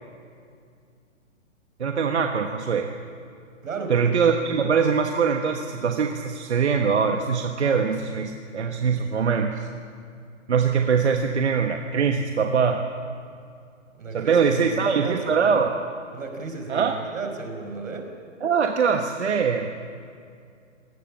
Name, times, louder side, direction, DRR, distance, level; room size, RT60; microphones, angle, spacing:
voice 1, 1.8-2.9 3.9-9.7 10.5-12.8 14.1-15.7 16.7-17.0 18.4-19.7, right 6 dB, 60° right, 4 dB, 1.3 m, -22 dB
voice 2, 3.6-4.1 14.0-15.6 16.1-18.1, right 3 dB, 80° right, 5 dB, 5.1 m, -34 dB
22.0 x 18.0 x 7.3 m, 2.3 s
hypercardioid pair, 175°, 39 cm